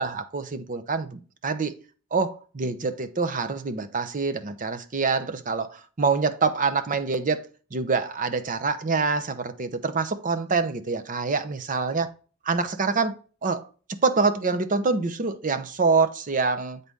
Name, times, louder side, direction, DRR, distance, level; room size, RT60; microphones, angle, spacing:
voice 1, 0.0-1.7 2.1-12.1 12.5-16.8, right 4 dB, 35° right, 0.7 m, -26 dB
7.7 x 4.1 x 3.5 m
head